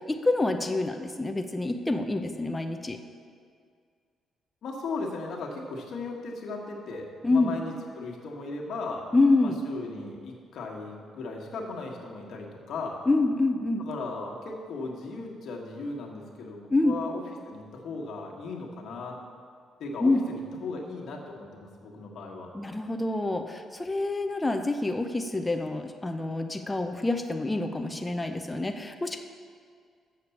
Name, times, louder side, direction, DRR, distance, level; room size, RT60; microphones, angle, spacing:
voice 1, 0.0-3.0 7.2-7.6 9.1-9.6 13.1-13.8 16.7-17.0 20.0-20.2 22.5-29.2, left 2 dB, 15° left, 5 dB, 0.5 m, -26 dB
voice 2, 4.6-9.1 9.4-13.0 13.8-19.2 19.8-22.5, left 3 dB, 70° left, -1 dB, 1.4 m, -37 dB
6.8 x 6.6 x 7.0 m, 2.1 s
cardioid pair, 90°, 0 cm